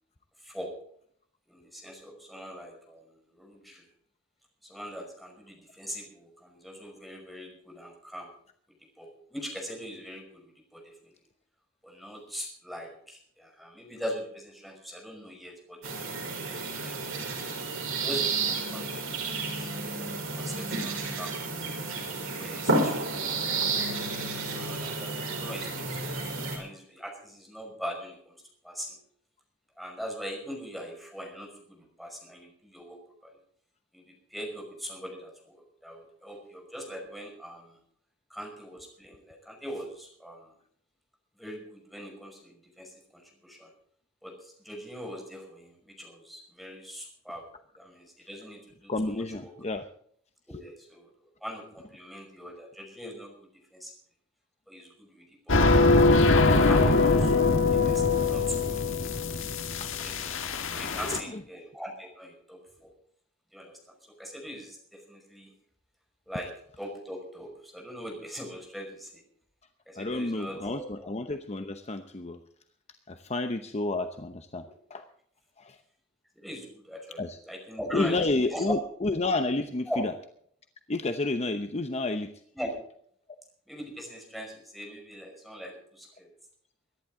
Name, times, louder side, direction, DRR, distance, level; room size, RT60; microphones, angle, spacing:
voice 1, 1.5-3.9 4.6-8.3 9.0-11.1 11.8-17.2 17.9-22.0 22.3-23.0 23.9-29.0 29.8-33.3 33.9-37.8 38.3-40.5 41.4-43.7 44.2-47.5 47.8-49.5 50.5-51.1 51.4-53.3 53.7-53.9 54.7-55.6 55.9-59.3 59.8-60.4 60.7-62.9 63.5-65.5 66.3-66.5 66.8-69.2 69.9-71.1 76.3-78.7 79.9-80.1 82.5-82.7 83.7-86.3, equal, ahead, 1 dB, 5.5 m, -41 dB
sound 1, 15.8-26.6, right 3 dB, 75° right, 5.4 m, -31 dB
voice 2, 48.9-49.8 55.6-55.7 60.9-61.4 70.0-72.4 73.1-75.1 75.6-75.8 77.2-77.4 77.9-80.1 80.9-82.3, left 2 dB, 30° left, 7 dB, 0.9 m, -30 dB
sound 2, 55.5-61.2, left 3 dB, 65° left, 1.5 m, -22 dB
23.5 x 11.0 x 3.8 m, 0.62 s
head